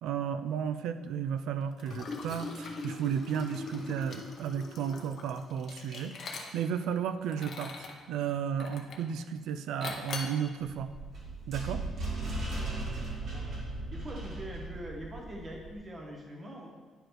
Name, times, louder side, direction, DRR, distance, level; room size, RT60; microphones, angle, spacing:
voice 1, 0.0-7.7 8.1-10.9 11.5-11.8, right 8 dB, 85° right, 10 dB, 0.4 m, -33 dB
Liquid, 1.8-6.8 7.3-8.0 8.6-9.1 9.8-10.4, left 3 dB, 40° left, 0.7 m, -41 dB
sound 1, 10.6-15.7, right 2 dB, 40° right, 1.3 m, -37 dB
voice 2, 13.9-16.7, equal, 20° right, 0 dB, 1.0 m, -43 dB
10.0 x 4.9 x 3.1 m, 1.5 s
cardioid pair, 180°, 0 cm